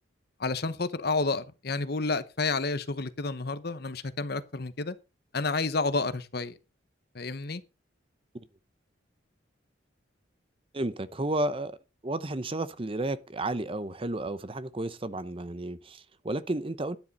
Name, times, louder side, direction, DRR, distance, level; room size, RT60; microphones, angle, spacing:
voice 1, 0.4-4.9 5.3-6.5 7.1-7.6, left 3 dB, 55° left, 0.9 m, -30 dB
voice 2, 10.7-11.8 12.0-17.0, right 1 dB, 30° right, 0.7 m, -32 dB
12.0 x 10.0 x 4.2 m
head